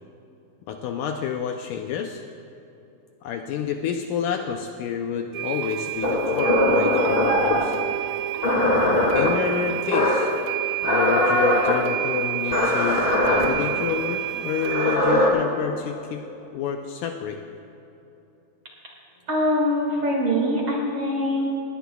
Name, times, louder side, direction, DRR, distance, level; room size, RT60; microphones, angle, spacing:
voice 1, 0.7-2.2 3.2-7.8 9.1-10.3 10.8-16.2 16.5-17.4, left 8 dB, 80° left, 4 dB, 2.0 m, -29 dB
sound 1, 5.3-15.0, right 16 dB, 90° right, 2.4 m, -30 dB
sound 2, 6.0-7.7 8.4-9.3 9.9-10.3 10.8-11.7 12.5-13.4 14.5-15.3, left 1 dB, 25° left, 1.3 m, -21 dB
voice 2, 19.3-21.5, equal, 45° right, -2 dB, 2.2 m, -23 dB
19.5 x 17.5 x 2.3 m, 2.9 s
omnidirectional pair, 4.1 m